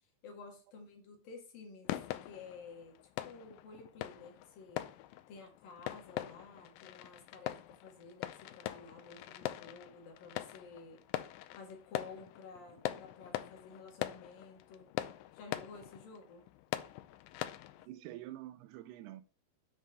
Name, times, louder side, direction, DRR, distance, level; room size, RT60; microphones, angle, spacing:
voice 1, 0.2-4.9 5.3-11.1 11.5-14.9 15.3-16.5 17.7-18.0, left 4 dB, 60° left, 3.4 m, -52 dB
sound 1, 1.9-17.9, left 14 dB, 85° left, 2.1 m, -43 dB
voice 2, 17.9-19.2, right 14 dB, 80° right, 2.7 m, -47 dB
7.7 x 5.0 x 6.6 m
omnidirectional pair, 4.7 m